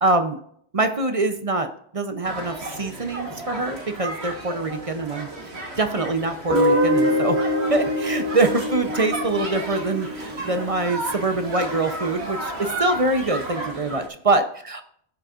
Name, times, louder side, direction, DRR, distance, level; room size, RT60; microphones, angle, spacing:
voice 1, 0.0-0.4 0.7-7.4 7.7-14.8, right 2 dB, 35° right, 8 dB, 0.7 m, -24 dB
sound 1, 2.2-14.1, right 1 dB, 75° right, 2.4 m, -33 dB
Guitar, 6.5-11.4, equal, 55° right, 2.4 m, -24 dB
16.0 x 6.4 x 2.5 m, 0.66 s
omnidirectional pair, 1.1 m